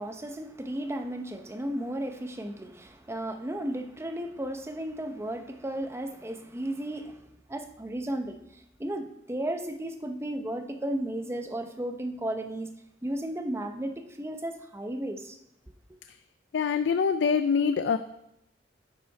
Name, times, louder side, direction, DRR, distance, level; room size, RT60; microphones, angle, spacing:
voice 1, 0.0-7.2 7.5-12.7 13.0-15.4, right 1 dB, 15° right, 0.6 m, -34 dB
voice 2, 16.5-18.0, left 6 dB, 70° left, 0.3 m, -24 dB
10.5 x 5.7 x 4.5 m
head